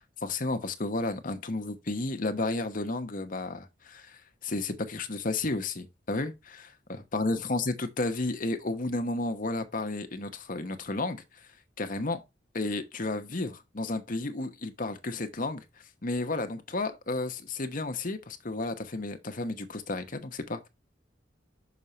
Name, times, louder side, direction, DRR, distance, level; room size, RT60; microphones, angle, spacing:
voice 1, 0.2-11.5 11.8-12.2 12.5-15.6 16.0-20.7, left 2 dB, 45° left, 1.0 m, -32 dB
6.0 x 5.4 x 4.3 m
head